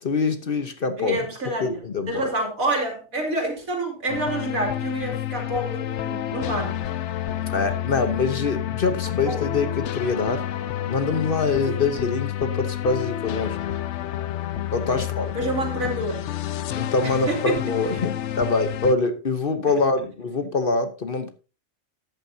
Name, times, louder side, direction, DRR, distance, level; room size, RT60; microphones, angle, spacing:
voice 1, 0.0-1.2 1.6-2.3 7.3-10.5 10.8-13.6 14.7-15.3 16.7-21.3, left 4 dB, 45° left, 1.1 m, -25 dB
voice 2, 1.0-7.0 9.2-9.7 11.6-11.8 14.9-15.0 15.3-16.2 17.0-18.1, right 1 dB, 90° right, 3.2 m, -28 dB
sound 1, 4.1-18.9, left 12 dB, 65° left, 0.9 m, -29 dB
13.5 x 9.3 x 2.8 m
omnidirectional pair, 1.4 m